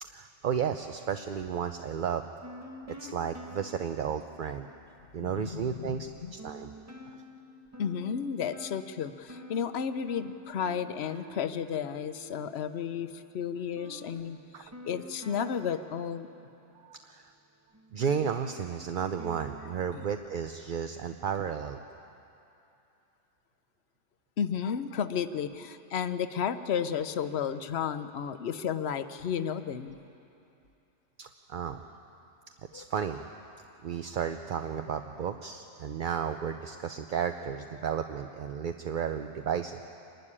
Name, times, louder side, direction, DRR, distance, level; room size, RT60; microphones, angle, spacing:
voice 1, 0.0-2.2 2.9-4.7 5.1-6.7 14.5-14.6 16.8-17.3 17.9-21.8 31.2-31.8 32.7-33.2 33.8-39.8, right 7 dB, 50° right, 7 dB, 0.7 m, -33 dB
sound 1, 2.4-5.3 5.8-5.9 6.4-17.1 17.7-20.1, equal, 15° right, 1.2 m, -49 dB
voice 2, 5.2-6.3 7.8-16.3 19.9-20.1 24.4-30.0 32.7-32.9, left 7 dB, 60° left, 11 dB, 1.0 m, -33 dB
25.5 x 12.0 x 9.9 m, 2.8 s
omnidirectional pair, 1.2 m